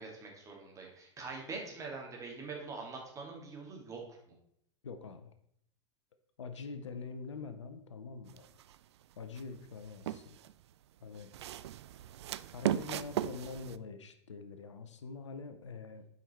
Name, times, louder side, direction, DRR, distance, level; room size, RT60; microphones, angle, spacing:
voice 1, 0.0-4.0, right 4 dB, 20° right, 0 dB, 2.4 m, -44 dB
voice 2, 4.8-5.3 6.4-8.5 9.2-10.4 11.0-11.3 12.5-16.1, left 4 dB, 75° left, 9 dB, 0.8 m, -45 dB
sound 1, 8.3-8.8 9.4-10.5 11.2-13.8, right 12 dB, 65° right, 0.4 m, -37 dB
8.5 x 5.2 x 4.3 m, 0.69 s
figure-of-eight pair, 95°, 15 cm